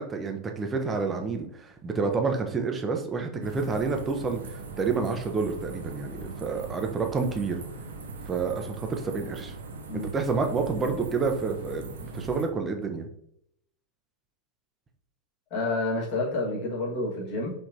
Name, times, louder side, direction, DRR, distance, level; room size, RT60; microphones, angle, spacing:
voice 1, 0.0-7.6 8.3-9.5 9.9-13.1, right 4 dB, 20° right, 4 dB, 0.6 m, -29 dB
sound 1, 3.4-12.5, right 3 dB, 65° right, 0.5 m, -40 dB
voice 2, 15.5-17.5, left 2 dB, 40° left, -4 dB, 1.6 m, -29 dB
4.8 x 3.2 x 2.7 m, 0.73 s
figure-of-eight pair, 90°, 0 cm